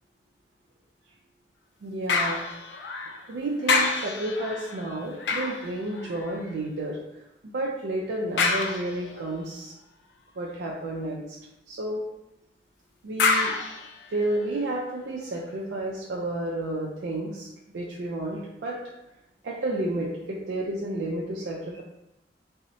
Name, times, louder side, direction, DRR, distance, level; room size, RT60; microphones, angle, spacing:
voice 1, 1.8-2.4 3.3-7.0 7.5-9.7 10.4-11.2 11.7-12.0 13.0-13.5 14.1-17.5 17.7-18.8 19.4-21.8, right 1 dB, 70° right, -3 dB, 0.4 m, -31 dB
sound 1, 2.1-3.3 3.6-6.5 8.4-9.3 13.2-14.7 15.2-15.3, left 4 dB, 70° left, 0.4 m, -28 dB
2.6 x 2.0 x 3.9 m, 0.92 s
head